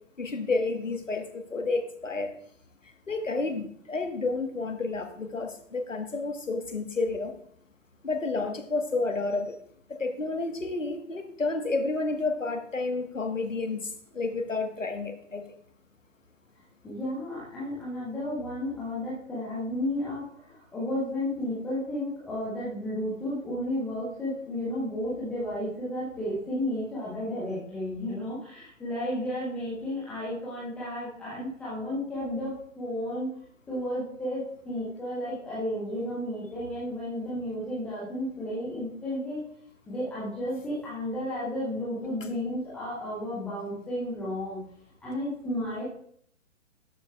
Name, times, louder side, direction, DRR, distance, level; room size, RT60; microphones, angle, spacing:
voice 1, 0.2-2.3 3.1-7.3 8.0-9.6 10.0-15.4, left 3 dB, 75° left, 5 dB, 1.4 m, -30 dB
voice 2, 16.8-33.3 33.7-39.4 39.9-44.7 45.0-45.8, left 1 dB, 5° left, -9 dB, 0.7 m, -33 dB
12.5 x 6.9 x 2.3 m, 0.65 s
figure-of-eight pair, 130°, 38 cm